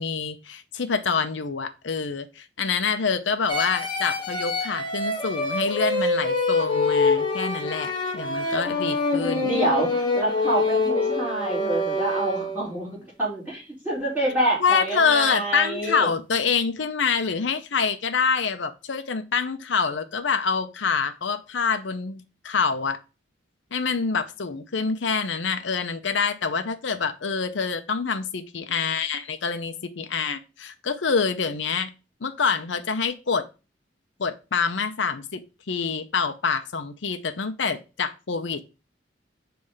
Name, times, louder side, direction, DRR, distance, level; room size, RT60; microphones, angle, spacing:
voice 1, 0.0-9.5 14.6-23.0 23.7-31.9 32.2-33.5 34.2-35.4 35.7-38.6, left 5 dB, 75° left, 8 dB, 0.7 m, -26 dB
sound 1, 3.5-12.8, left 2 dB, 25° left, 1.1 m, -25 dB
voice 2, 9.4-16.1, right 1 dB, 10° right, -8 dB, 4.4 m, -27 dB
6.4 x 3.4 x 5.5 m, 0.30 s
head